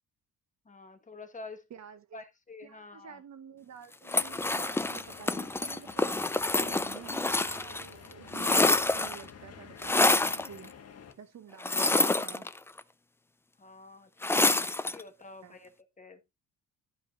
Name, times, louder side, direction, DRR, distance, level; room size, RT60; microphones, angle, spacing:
voice 1, 0.7-1.6 2.1-3.2 13.6-15.7 16.0-16.2, left 3 dB, 25° left, 1.3 m, -48 dB
voice 2, 1.7-2.3 2.6-6.2 6.6-10.7 11.2-12.5 14.3-14.7 15.4-15.6, right 8 dB, 55° right, 1.3 m, -49 dB
sound 1, 4.1-7.8 8.1-9.3 9.8-10.5 11.6-12.8 14.2-15.0, left 2 dB, 10° left, 0.4 m, -27 dB
sound 2, 4.2-11.1, left 6 dB, 50° left, 1.6 m, -51 dB
11.0 x 5.2 x 3.0 m
cardioid pair, 120°, 33 cm